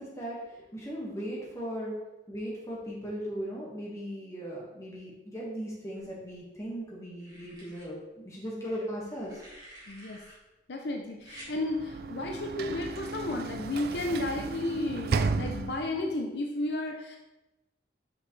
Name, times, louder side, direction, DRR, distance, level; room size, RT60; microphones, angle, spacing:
voice 1, 0.0-1.9 2.3-9.3, equal, 15° left, -5 dB, 1.6 m, -38 dB
sound 1, 6.0-6.6 7.2-7.9 9.0-10.3 11.2-11.5 12.9-13.1, right 1 dB, 20° right, 2.0 m, -51 dB
voice 2, 9.9-10.2 10.7-17.2, left 2 dB, 65° left, 2 dB, 0.6 m, -33 dB
Sliding door / Slam, 11.4-16.2, right 4 dB, 55° right, 0.3 m, -34 dB
6.1 x 5.4 x 3.2 m, 1.0 s
head